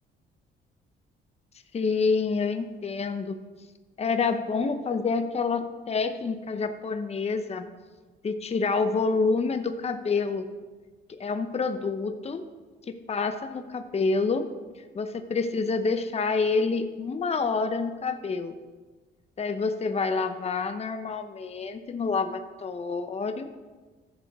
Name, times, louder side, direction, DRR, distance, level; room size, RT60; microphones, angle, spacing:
voice 1, 1.7-3.4 4.0-7.7 8.2-10.5 11.1-12.4 12.9-14.5 14.9-18.6 19.4-23.5, left 4 dB, 30° left, 8 dB, 0.8 m, -27 dB
13.0 x 7.3 x 3.6 m, 1.3 s
cardioid pair, 90°, 20 cm